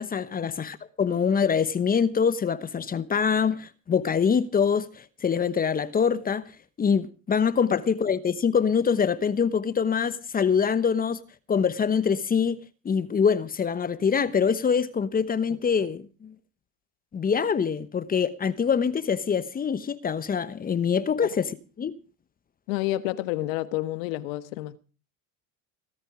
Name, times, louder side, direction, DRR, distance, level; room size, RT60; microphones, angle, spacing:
voice 1, 0.0-6.4 6.8-11.2 11.5-12.6 12.8-16.3 17.1-21.9, left 6 dB, 20° left, 1.1 m, -24 dB
voice 2, 22.7-24.8, left 16 dB, 70° left, 1.5 m, -29 dB
17.5 x 13.5 x 4.9 m
supercardioid pair, 115°, 41 cm